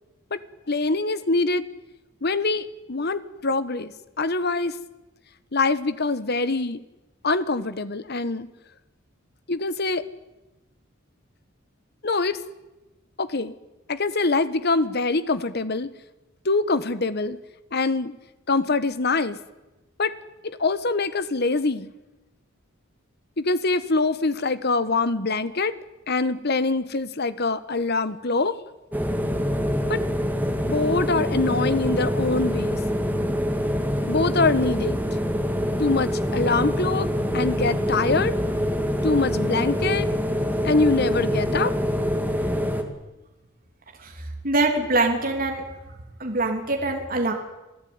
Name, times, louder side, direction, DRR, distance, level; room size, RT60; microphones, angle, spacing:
voice 1, 0.7-1.6 2.2-3.9 4.2-4.7 5.5-6.8 7.2-8.5 9.5-10.0 12.0-12.4 13.2-13.5 13.9-15.9 16.4-17.4 17.7-18.1 18.5-19.4 20.0-20.1 20.4-21.9 23.4-25.8 26.1-28.5 29.9-30.0 30.7-32.8 34.1-35.0 35.8-38.3 39.0-40.1 40.6-41.7, left 3 dB, 55° left, 14 dB, 1.3 m, -24 dB
sound 1, 28.9-42.8, equal, 10° right, 2.3 m, -25 dB
voice 2, 44.4-45.6 46.2-47.3, right 2 dB, 45° right, 3 dB, 3.1 m, -23 dB
27.5 x 16.5 x 9.6 m, 1.0 s
head